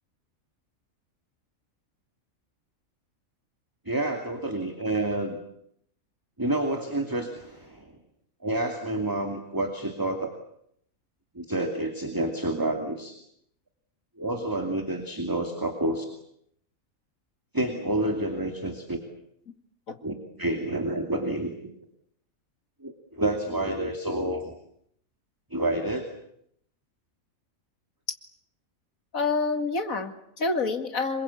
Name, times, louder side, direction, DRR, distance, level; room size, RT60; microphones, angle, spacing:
voice 1, 3.9-5.4 6.4-7.9 8.4-10.3 11.4-13.1 14.2-16.0 17.5-19.0 20.0-21.6 22.8-24.5 25.5-26.0, right 1 dB, 15° right, 4 dB, 2.6 m, -29 dB
voice 2, 29.1-31.2, left 3 dB, 75° left, 8 dB, 2.6 m, -27 dB
27.5 x 23.0 x 8.4 m, 0.71 s
omnidirectional pair, 1.4 m